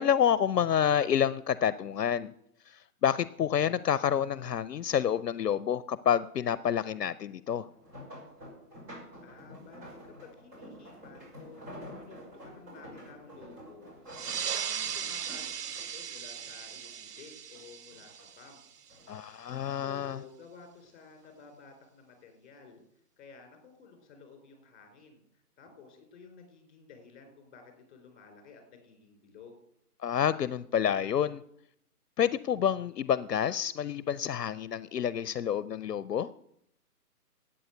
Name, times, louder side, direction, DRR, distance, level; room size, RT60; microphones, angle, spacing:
voice 1, 0.0-2.3 2.7-7.7 19.1-20.2 30.0-31.4 32.2-36.3, left 9 dB, 80° left, 17 dB, 0.7 m, -28 dB
sound 1, 7.6-17.2 17.5-18.5 18.9-20.2 21.0-21.3 21.7-21.8, equal, 25° right, 5.3 m, -49 dB
voice 2, 9.2-14.0 14.5-18.6 19.5-22.8 23.2-25.2 25.6-29.6, left 5 dB, 30° left, 5 dB, 4.3 m, -53 dB
sound 2, 14.1-19.2, right 8 dB, 75° right, 0.8 m, -38 dB
12.5 x 8.8 x 7.9 m, 0.73 s
hypercardioid pair, 155°, 47 cm